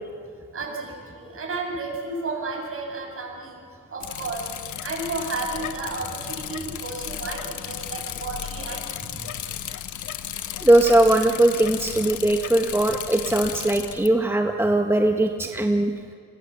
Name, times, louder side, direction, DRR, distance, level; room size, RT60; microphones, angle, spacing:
voice 1, 0.5-3.6 3.9-4.5 4.8-9.3, right 3 dB, 45° right, 1 dB, 7.7 m, -32 dB
Bicycle, 4.0-14.1, left 10 dB, 75° left, 1.4 m, -34 dB
voice 2, 10.6-15.9, right 1 dB, 10° right, 4 dB, 1.4 m, -20 dB
28.0 x 22.5 x 7.4 m, 2.5 s
cardioid pair, 90°, 30 cm